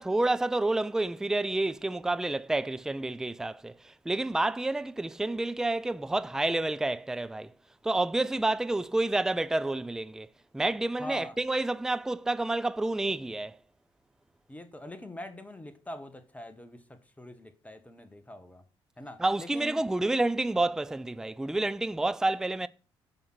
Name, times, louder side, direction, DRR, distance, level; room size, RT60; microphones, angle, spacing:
voice 1, 0.0-7.5 7.8-10.3 10.5-13.6 19.2-22.7, right 2 dB, 5° right, 0.4 m, -29 dB
voice 2, 11.0-11.4 14.5-18.6 19.0-19.8, left 1 dB, 10° left, 1.5 m, -43 dB
10.5 x 5.7 x 6.1 m
figure-of-eight pair, 45°, 13 cm